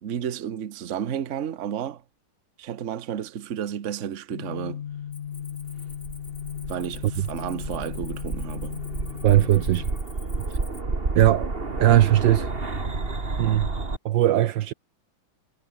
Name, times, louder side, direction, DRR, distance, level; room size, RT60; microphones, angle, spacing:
voice 1, 0.0-2.0 2.6-4.8 6.7-8.7, right 9 dB, 45° right, 1.1 m, -32 dB
sound 1, 4.3-9.8, left 9 dB, 85° left, 0.5 m, -36 dB
Cricket, 5.1-10.8, left 2 dB, 20° left, 3.4 m, -50 dB
sound 2, 5.6-14.0, right 3 dB, 25° right, 2.7 m, -31 dB
voice 2, 9.2-9.9 11.1-11.5 11.8-12.5 13.4-13.7 14.0-14.7, right 13 dB, 70° right, 1.3 m, -19 dB
omnidirectional pair, 2.3 m